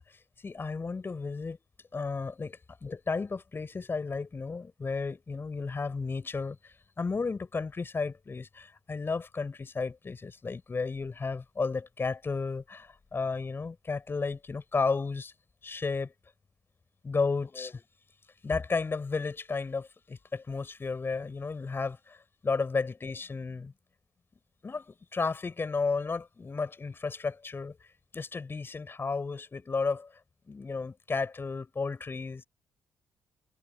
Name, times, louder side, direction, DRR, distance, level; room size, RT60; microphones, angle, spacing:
voice 1, 0.1-1.6 1.9-15.3 15.6-16.1 17.0-17.8 18.4-22.2 22.4-23.7 24.6-27.8 28.1-30.1 30.5-32.4, left 4 dB, 35° left, 7.0 m, -33 dB
hypercardioid pair, 40°, 6 cm